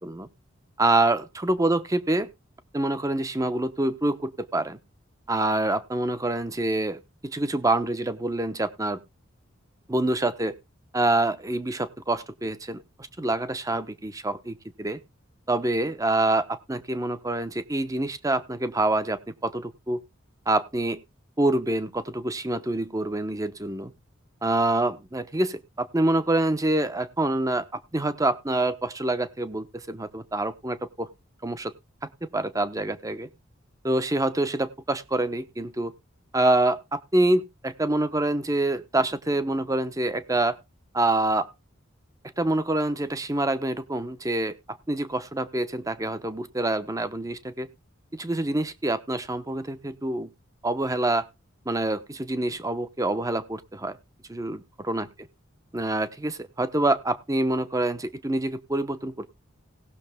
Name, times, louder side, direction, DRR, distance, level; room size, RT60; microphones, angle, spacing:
voice 1, 0.8-2.3 2.7-4.8 5.3-9.0 9.9-10.5 10.9-12.8 13.2-15.0 15.5-20.0 20.5-21.0 21.4-23.9 24.4-31.1 31.4-31.7 32.2-33.3 33.8-35.9 36.3-40.6 40.9-41.5 42.4-44.6 44.9-47.7 48.1-50.3 50.6-51.3 51.7-54.0 54.3-55.1 55.7-59.3, right 2 dB, 15° right, 0.9 m, -26 dB
18.5 x 6.5 x 3.5 m
head